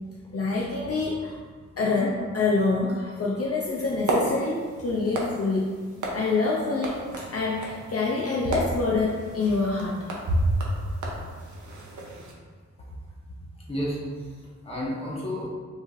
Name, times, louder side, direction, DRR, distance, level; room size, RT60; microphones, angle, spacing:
voice 1, 0.3-1.4 1.8-5.7 6.1-10.0, left 3 dB, 55° left, -4 dB, 0.5 m, -26 dB
sound 1, 3.7-12.3, right 1 dB, 85° right, 0.8 m, -31 dB
voice 2, 13.7-15.5, equal, 20° left, -6 dB, 1.1 m, -32 dB
5.2 x 3.1 x 2.5 m, 1.5 s
wide cardioid pair, 135°, 29 cm